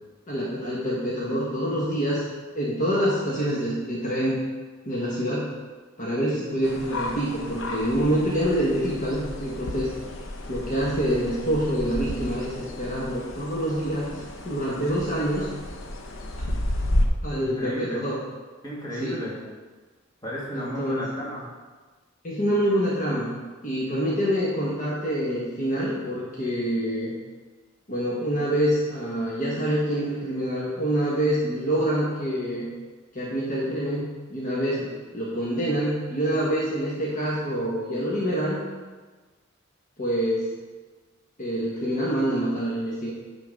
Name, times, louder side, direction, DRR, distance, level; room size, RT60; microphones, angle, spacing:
voice 1, 0.3-2.2 2.5-4.4 4.8-5.5 6.0-9.9 10.5-15.5 17.2-18.2 19.0-19.2 20.5-21.1 22.2-23.3 23.6-27.1 27.9-32.7 33.1-34.0 34.3-38.6 40.0-40.5 41.4-43.1, equal, 40° left, -6 dB, 1.3 m, -26 dB
sound 1, 6.6-17.1, left 1 dB, 70° left, 0.8 m, -32 dB
voice 2, 17.4-18.0 18.6-19.4 20.2-21.4, equal, 20° left, -7 dB, 2.3 m, -33 dB
9.7 x 4.0 x 5.2 m, 1.3 s
head